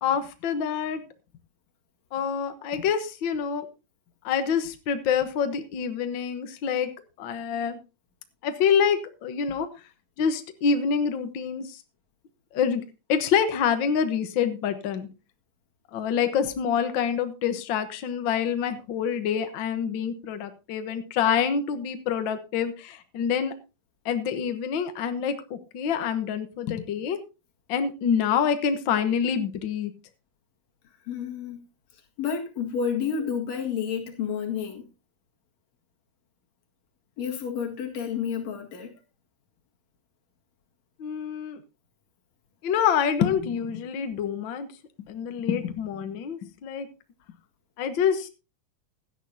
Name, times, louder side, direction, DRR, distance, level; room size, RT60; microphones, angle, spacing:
voice 1, 0.0-1.0 2.1-3.7 4.2-6.9 7.2-7.8 8.4-9.7 10.2-11.8 12.5-12.8 13.1-15.1 15.9-23.5 24.0-27.2 27.7-29.9 41.0-41.6 42.6-44.7 45.1-46.9 47.8-48.3, left 7 dB, 80° left, 8 dB, 1.0 m, -26 dB
voice 2, 31.1-31.6 32.2-34.9 37.2-39.0, left 7 dB, 55° left, 1 dB, 3.0 m, -30 dB
16.5 x 11.0 x 2.8 m, 0.29 s
omnidirectional pair, 3.9 m